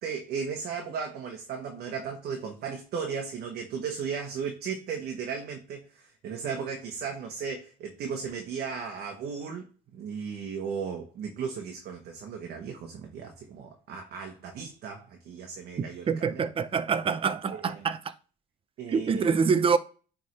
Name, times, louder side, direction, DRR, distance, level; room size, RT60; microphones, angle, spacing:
voice 1, 0.0-9.6 9.9-16.5 17.5-17.9 18.8-19.3, right 6 dB, 65° right, 1.1 m, -36 dB
voice 2, 16.1-18.0 18.9-19.8, right 5 dB, 30° right, 0.6 m, -25 dB
9.5 x 3.6 x 3.2 m
cardioid pair, 110°, 17 cm